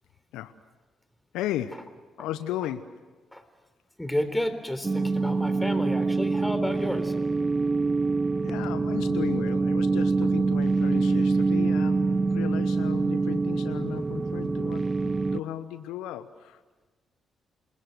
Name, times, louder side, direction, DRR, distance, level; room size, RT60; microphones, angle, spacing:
voice 1, 1.3-1.9 2.2-2.9 8.4-16.6, left 12 dB, 75° left, 12 dB, 0.9 m, -35 dB
voice 2, 4.0-7.2, left 1 dB, 10° left, 9 dB, 3.8 m, -31 dB
sound 1, 4.8-15.4, right 3 dB, 30° right, 0.8 m, -25 dB
28.5 x 21.0 x 7.9 m, 1.3 s
hypercardioid pair, 45°, 0 cm